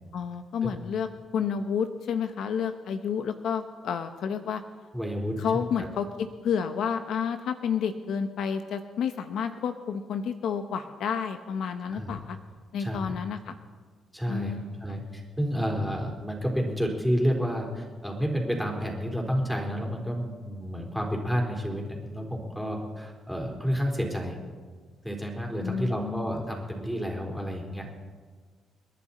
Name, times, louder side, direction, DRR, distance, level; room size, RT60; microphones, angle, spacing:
voice 1, 0.1-1.1 1.3-4.6 5.4-12.4 12.7-13.6 14.3-15.0 25.6-26.4, left 7 dB, 75° left, 8 dB, 0.9 m, -30 dB
voice 2, 4.9-5.6 11.9-12.1 12.8-13.2 14.1-14.5 14.8-24.4 25.0-28.0, equal, ahead, 1 dB, 4.1 m, -30 dB
30.0 x 11.0 x 4.3 m, 1.5 s
cardioid pair, 90°, 0 cm